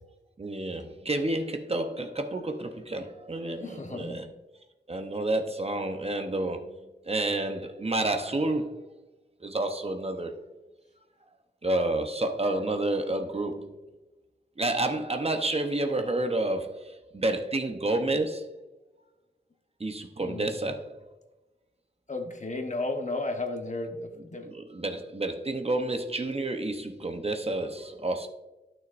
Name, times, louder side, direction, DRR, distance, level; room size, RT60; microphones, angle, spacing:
voice 1, 0.4-4.3 4.9-6.7 7.1-8.8 9.4-10.3 11.6-13.7 14.6-18.5 19.8-20.9 24.1-24.2 24.5-28.3, right 2 dB, 35° right, 0.8 m, -30 dB
voice 2, 3.6-4.2 20.2-20.6 22.1-24.5, left 2 dB, 45° left, 1.1 m, -33 dB
11.5 x 6.4 x 2.5 m
wide cardioid pair, 90°, 18 cm